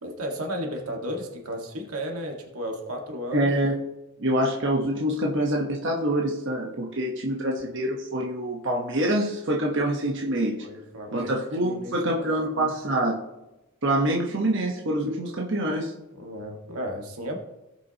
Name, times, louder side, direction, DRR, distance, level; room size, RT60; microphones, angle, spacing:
voice 1, 0.0-3.5 10.6-12.3 12.5-12.7 16.1-17.4, equal, 85° right, 2 dB, 1.8 m, -34 dB
voice 2, 3.3-3.7 4.2-10.6 11.1-13.2 13.8-15.9, right 1 dB, 55° right, -1 dB, 1.2 m, -25 dB
18.0 x 6.1 x 2.9 m, 0.98 s
head